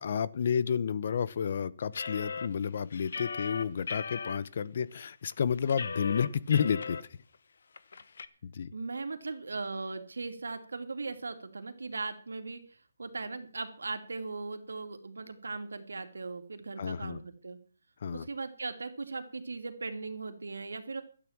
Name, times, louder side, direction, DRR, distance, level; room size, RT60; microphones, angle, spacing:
voice 1, 0.0-7.1 8.4-8.7 16.8-17.2 18.0-18.3, left 7 dB, 50° left, 18 dB, 0.9 m, -31 dB
sound 1, 1.9-4.4 4.9-5.0 5.3-7.0 7.3-7.4 7.8-8.3, left 5 dB, 65° left, 1.2 m, -38 dB
voice 2, 8.7-17.6 18.1-21.0, right 3 dB, 90° right, 7 dB, 2.6 m, -38 dB
12.5 x 9.2 x 7.4 m, 0.42 s
hypercardioid pair, 160°, 0 cm